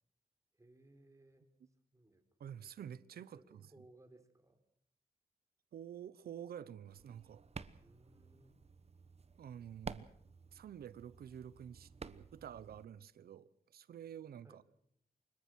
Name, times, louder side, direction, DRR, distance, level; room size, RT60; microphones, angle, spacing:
voice 1, 0.5-2.7 3.3-4.6 7.8-8.6 14.4-14.6, right 1 dB, 20° right, 4.4 m, -64 dB
voice 2, 2.4-3.6 5.7-7.4 9.4-10.1 10.5-14.6, right 9 dB, 90° right, 1.0 m, -49 dB
sound 1, 6.9-12.8, right 5 dB, 40° right, 1.1 m, -52 dB
25.0 x 21.5 x 6.4 m
cardioid pair, 85°, 16 cm